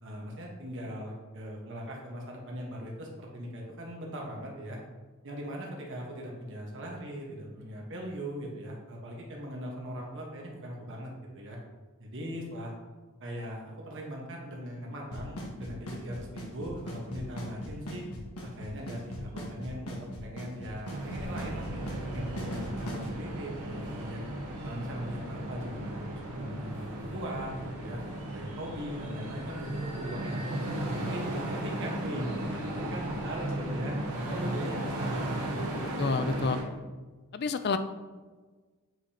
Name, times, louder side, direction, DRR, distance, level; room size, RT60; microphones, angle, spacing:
voice 1, 0.0-4.8 5.2-11.6 12.0-12.7 13.2-18.0 18.4-24.2 24.6-30.5 30.9-33.9 34.3-35.4 35.9-36.4, equal, 55° right, -1 dB, 1.3 m, -40 dB
Drum kit / Snare drum / Bass drum, 15.1-23.1, equal, 80° left, 1.5 m, -39 dB
sound 1, 20.9-36.6, right 1 dB, 85° right, 1.5 m, -35 dB
Bass guitar, 21.2-27.5, right 1 dB, 20° right, 1.5 m, -47 dB
voice 2, 36.0-36.6 37.3-37.8, left 4 dB, 45° left, 11 dB, 0.4 m, -28 dB
7.7 x 5.0 x 2.9 m, 1.3 s
head